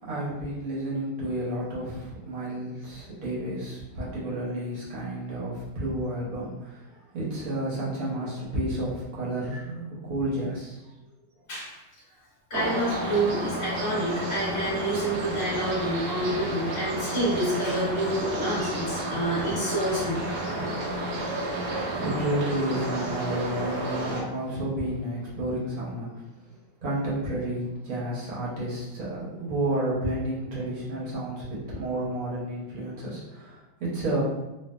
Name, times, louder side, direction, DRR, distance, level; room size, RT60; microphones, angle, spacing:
voice 1, 0.0-11.1 22.0-34.2, right 1 dB, 55° right, -6 dB, 1.2 m, -31 dB
voice 2, 11.5-11.8 12.5-20.2, right 1 dB, 15° left, -8 dB, 0.8 m, -28 dB
sound 1, 12.5-24.2, right 1 dB, 80° right, 1.4 m, -31 dB
3.2 x 2.3 x 2.3 m, 0.98 s
omnidirectional pair, 2.0 m